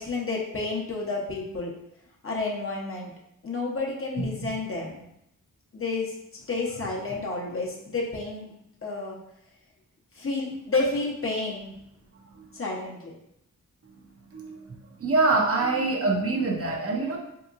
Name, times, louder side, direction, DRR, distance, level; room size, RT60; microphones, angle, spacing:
voice 1, 0.0-1.7 2.2-3.1 3.4-5.0 5.7-6.2 6.5-8.5 8.8-9.2 10.2-11.7 12.5-13.1, left 3 dB, 40° left, -3 dB, 0.8 m, -30 dB
voice 2, 14.3-17.2, right 3 dB, 45° right, 0 dB, 0.6 m, -25 dB
3.5 x 2.9 x 2.4 m, 0.80 s
cardioid pair, 70°, 33 cm